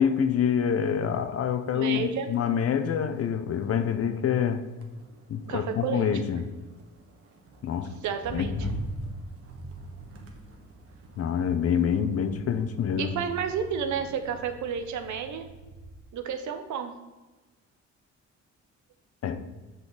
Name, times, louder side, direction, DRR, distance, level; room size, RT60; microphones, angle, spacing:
voice 1, 0.0-4.6 5.3-6.5 7.6-7.9 8.3-8.8 11.2-13.1 19.2-19.4, left 8 dB, 50° left, 10 dB, 0.7 m, -26 dB
Motor vehicle (road), 1.0-1.3 1.7-16.1 16.5-16.9, right 2 dB, 50° right, 1.2 m, -44 dB
voice 2, 1.7-2.3 5.5-6.1 8.0-8.7 13.0-15.5 16.1-17.0, right 7 dB, 70° right, 8 dB, 0.8 m, -31 dB
6.1 x 5.2 x 3.9 m, 1.2 s
cardioid pair, 90°, 30 cm